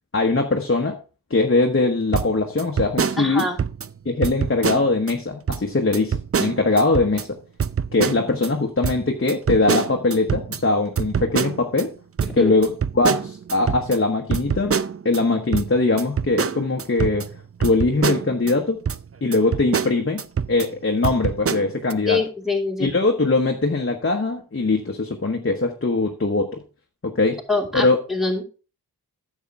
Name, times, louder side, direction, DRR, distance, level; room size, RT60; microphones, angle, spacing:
voice 1, 0.1-1.0 1.3-3.4 4.0-7.3 7.9-11.9 12.3-14.8 15.0-17.3 17.6-18.8 19.2-20.2 20.5-22.2 22.8-26.6 27.0-27.4 27.7-28.0, left 3 dB, 35° left, 2 dB, 1.1 m, -21 dB
sound 1, 2.1-3.9 4.2-5.1 5.5-5.6 5.9-7.2 7.6-8.5 8.8-11.8 12.2-15.2 15.5-18.5 18.9-19.0 19.3-20.7 21.0-21.9, right 6 dB, 35° right, 0.5 m, -25 dB
voice 2, 3.2-3.6 12.3-12.5 22.1-22.9 27.5-28.4, left 3 dB, ahead, 0 dB, 2.9 m, -24 dB
10.0 x 7.3 x 3.5 m, 0.34 s
wide cardioid pair, 60°, 38 cm